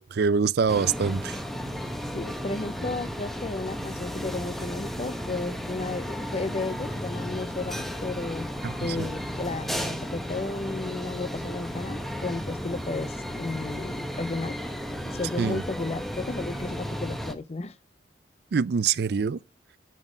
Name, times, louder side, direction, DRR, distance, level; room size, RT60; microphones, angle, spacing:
voice 1, 0.1-1.4 8.6-9.1 15.4-15.6 18.5-19.4, right 5 dB, 60° right, 0.4 m, -25 dB
sound 1, 0.7-17.3, equal, ahead, 0.9 m, -34 dB
voice 2, 2.1-8.5 8.8-14.6 15.1-17.8, left 3 dB, 35° left, 0.5 m, -33 dB
11.0 x 4.2 x 4.9 m
head